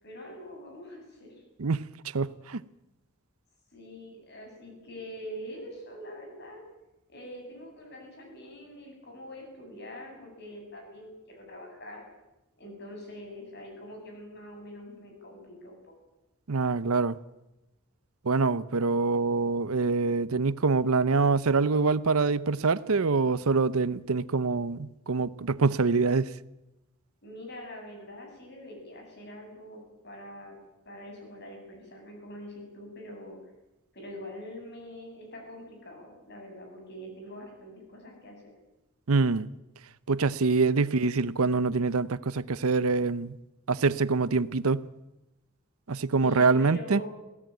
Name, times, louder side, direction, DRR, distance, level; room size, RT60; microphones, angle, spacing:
voice 1, 0.0-1.3 3.7-6.6 7.1-12.0 12.6-15.9 27.2-30.5 30.8-33.4 33.9-38.4 46.2-47.1, equal, 50° left, 7.9 m, -44 dB
voice 2, 2.1-2.6 16.5-17.2 18.2-26.3 39.1-39.5 40.1-43.4 43.7-44.8 45.9-47.0, right 4 dB, 80° right, 0.7 m, -25 dB
23.0 x 17.0 x 9.1 m
head